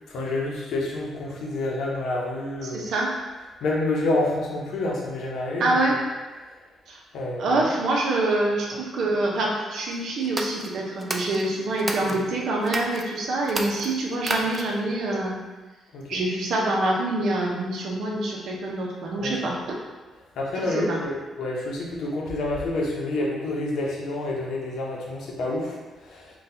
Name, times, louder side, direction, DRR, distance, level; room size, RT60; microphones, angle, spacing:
voice 1, 0.1-2.9 3.6-6.0 7.1-7.7 15.9-16.0 19.1-19.4 20.4-25.8 26.1-26.3, left 2 dB, 75° left, -3 dB, 0.7 m, -28 dB
voice 2, 2.6-3.1 5.6-6.0 6.9-7.0 7.4-15.4 16.1-19.6 20.5-21.0, right 2 dB, 70° right, -2 dB, 0.7 m, -25 dB
sound 1, 10.2-12.2 12.6-13.0 13.4-14.8, right 2 dB, 20° right, 0.4 m, -32 dB
3.9 x 2.3 x 2.7 m, 1.3 s
cardioid pair, 90°, 0 cm